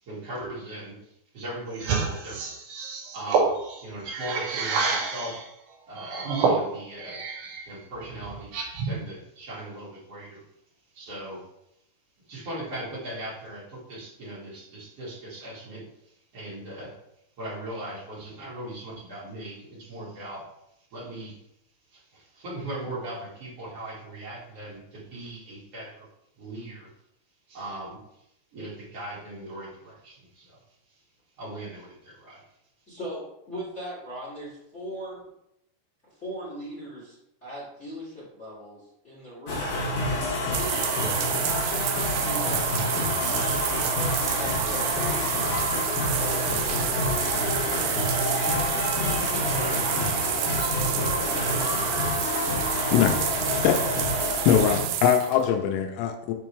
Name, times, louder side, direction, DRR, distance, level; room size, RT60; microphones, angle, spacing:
voice 1, 0.0-2.5 3.1-3.5 3.8-5.4 5.9-7.2 7.6-10.4 10.9-11.4 12.3-16.9 17.4-20.4 20.9-21.4 21.9-26.1 26.4-26.9 27.5-28.0 28.5-30.6 31.4-32.4 49.1-51.2 51.7-52.3, right 1 dB, 45° right, -8 dB, 2.1 m, -39 dB
sound 1, 1.7-5.4 6.0-7.6 8.0-9.0, right 4 dB, 65° right, 3.9 m, -28 dB
voice 2, 32.9-35.3 36.1-39.7 40.5-41.5 42.1-45.0, equal, 30° left, -8 dB, 1.2 m, -39 dB
sound 2, 39.5-54.8, left 2 dB, 55° left, 2.5 m, -28 dB
sound 3, 40.5-55.5, right 12 dB, 85° right, 2.7 m, -29 dB
voice 3, 52.9-53.2 53.6-53.8 54.5-56.3, left 9 dB, 85° left, 5 dB, 3.4 m, -22 dB
7.9 x 4.4 x 3.2 m, 0.78 s
omnidirectional pair, 6.0 m